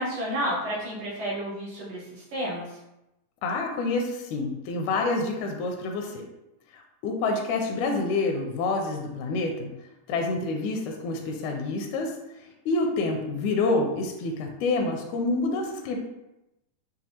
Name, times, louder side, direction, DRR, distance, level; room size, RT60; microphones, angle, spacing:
voice 1, 0.0-2.8, equal, 60° right, -7 dB, 1.8 m, -31 dB
voice 2, 3.4-6.2 6.7-9.7 10.1-12.1 12.7-16.0, left 3 dB, 80° left, 2 dB, 1.7 m, -27 dB
6.2 x 2.3 x 2.8 m, 0.92 s
omnidirectional pair, 3.8 m